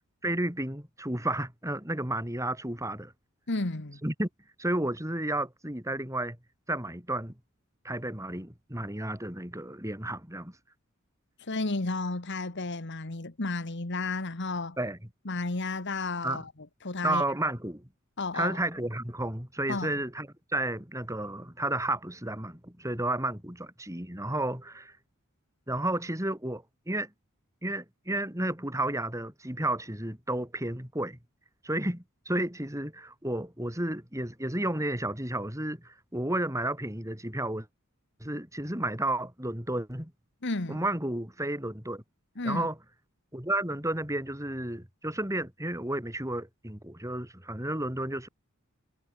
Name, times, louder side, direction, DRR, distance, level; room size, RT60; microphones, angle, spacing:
voice 1, 0.2-3.1 4.0-4.3 4.6-6.4 6.7-7.3 7.8-10.5 14.8-15.0 16.2-16.4 17.0-17.9 18.3-24.9 25.7-27.1 27.6-31.2 31.6-37.7 38.2-40.1 40.7-42.0 42.4-42.7 43.3-48.3, right 1 dB, 15° right, 6.2 m, -32 dB
voice 2, 3.5-4.0 11.4-14.8 15.2-16.5 16.8-17.2 18.2-18.6 19.7-20.0 40.4-40.8 42.4-42.7, left 3 dB, 55° left, 1.6 m, -32 dB
head